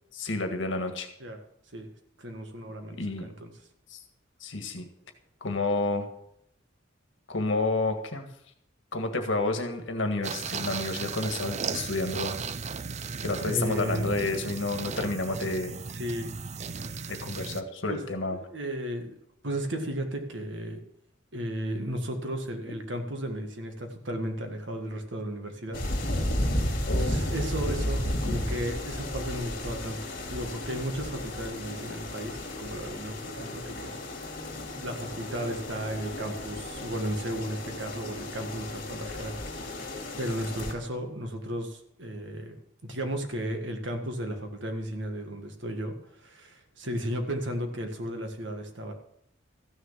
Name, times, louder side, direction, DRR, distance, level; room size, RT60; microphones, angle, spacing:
voice 1, 0.1-1.1 3.0-3.3 3.9-4.0 4.4-4.9 5.4-6.1 7.3-8.3 8.9-12.4 13.2-15.7 17.1-18.4 26.9-27.2, left 2 dB, 70° left, 6 dB, 1.7 m, -30 dB
voice 2, 2.2-3.5 13.2-14.1 15.9-16.3 17.9-18.0 18.5-19.2 19.4-20.8 21.3-25.8 27.0-30.0 30.3-34.0 34.8-42.5 42.8-48.9, equal, 65° right, 5 dB, 1.8 m, -34 dB
sound 1, 10.2-17.6, right 5 dB, 35° right, 0.5 m, -36 dB
sound 2, 25.7-40.7, left 1 dB, 45° left, 2.8 m, -33 dB
14.5 x 6.5 x 7.4 m, 0.73 s
head